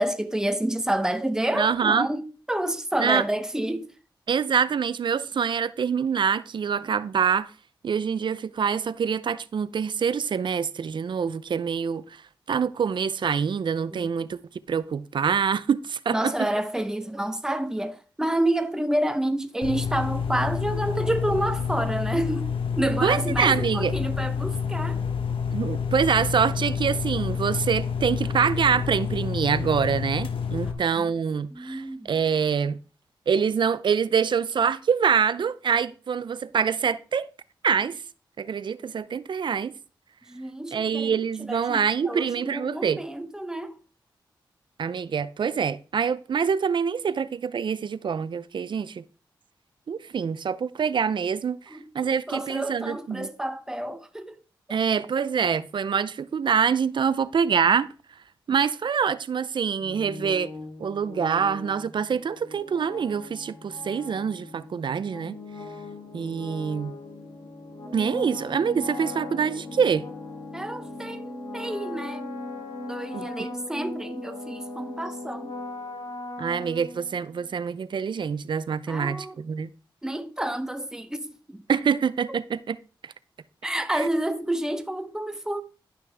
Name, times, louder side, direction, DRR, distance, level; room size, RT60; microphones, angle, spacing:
voice 1, 0.0-2.2 2.5-3.9 13.9-14.1 16.1-22.5 22.7-25.0 31.0-31.1 31.5-32.1 40.3-43.8 51.7-54.4 70.5-72.4 72.9-75.5 78.9-79.4 80.0-81.6 82.3-82.4 83.6-85.6, right 1 dB, 5° right, 1.0 m, -29 dB
voice 2, 1.5-2.1 3.0-3.2 4.3-7.5 7.8-12.0 12.5-14.4 14.7-16.3 23.0-23.9 25.5-32.8 33.3-37.3 37.6-38.0 38.4-39.7 40.7-43.0 44.8-49.0 49.9-51.6 51.9-53.3 54.7-57.9 58.5-60.5 60.8-65.4 66.1-66.9 67.9-70.1 73.1-73.5 76.4-79.7 81.7-82.8 83.0-83.1 84.0-84.1, right 6 dB, 65° right, 0.5 m, -25 dB
sound 1, 19.6-30.7, left 6 dB, 85° left, 1.2 m, -28 dB
sound 2, 59.8-77.4, left 2 dB, 65° left, 2.6 m, -39 dB
11.0 x 5.9 x 3.5 m
cardioid pair, 70°, 9 cm